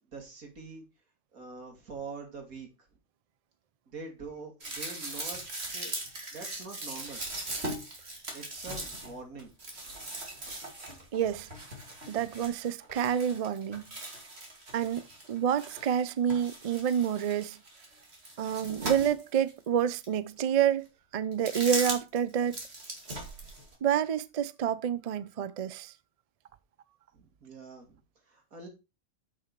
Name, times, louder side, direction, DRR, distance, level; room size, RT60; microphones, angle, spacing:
voice 1, 0.1-0.8 1.3-2.9 3.9-5.4 5.7-6.0 6.3-7.2 8.3-9.5 22.4-22.5 27.1-28.0 28.3-28.7, right 4 dB, 85° right, 2.8 m, -44 dB
sound 1, 4.6-16.0 16.3-19.5 20.0-20.1 21.3-22.2 22.5-23.7, right 2 dB, 50° right, 2.8 m, -39 dB
voice 2, 11.1-11.5 12.1-13.9 14.7-17.6 18.4-20.9 21.1-22.6 23.8-25.9, right 9 dB, 70° right, 0.3 m, -28 dB
7.8 x 6.2 x 4.6 m
omnidirectional pair, 1.4 m